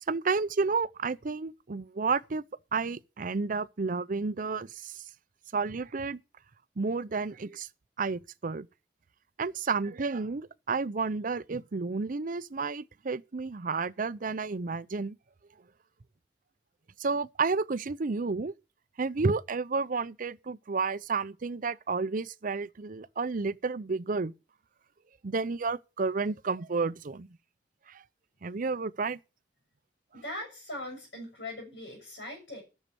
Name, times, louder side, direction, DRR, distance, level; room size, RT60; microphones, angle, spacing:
voice 1, 0.1-2.4 2.7-5.0 5.5-6.2 6.8-7.7 8.0-8.7 9.4-15.2 17.0-18.5 19.0-24.3 25.2-27.3 27.9-28.0 28.4-29.2, right 4 dB, 50° right, 0.6 m, -31 dB
voice 2, 30.1-32.6, left 1 dB, 80° left, 6.4 m, -40 dB
13.0 x 6.6 x 6.9 m
head